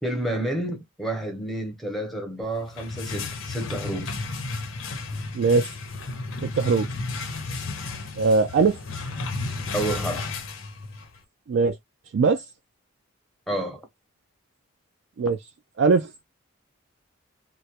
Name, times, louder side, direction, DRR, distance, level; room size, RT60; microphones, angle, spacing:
voice 1, 0.0-4.1 9.7-10.3 13.5-13.9, right 1 dB, ahead, 0.6 m, -30 dB
sound 1, 2.5-11.2, left 3 dB, 70° left, 0.6 m, -33 dB
voice 2, 5.3-5.7 6.4-6.9 8.2-8.8 11.5-11.7 12.1-12.4 15.2-15.4 15.8-16.1, right 4 dB, 60° right, 0.3 m, -20 dB
2.2 x 2.0 x 2.8 m
head